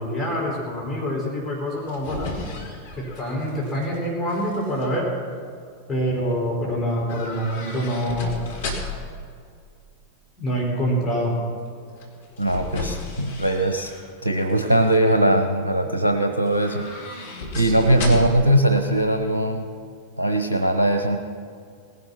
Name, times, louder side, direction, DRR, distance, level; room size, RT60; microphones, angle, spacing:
voice 1, 0.0-2.5 3.0-5.1 5.9-8.4 10.4-11.4 17.5-18.0, equal, 10° left, -5 dB, 4.6 m, -26 dB
sound 1, 1.6-4.0 4.3-4.9 7.1-9.2 12.0-14.1 14.5-15.0 16.5-18.5 18.8-18.9, left 3 dB, 60° left, 3.0 m, -34 dB
voice 2, 12.4-13.9 14.2-16.8 17.6-19.7 20.2-21.2, right 1 dB, 80° right, 7 dB, 1.0 m, -20 dB
18.0 x 11.5 x 5.7 m, 2.2 s
figure-of-eight pair, 90°, 0 cm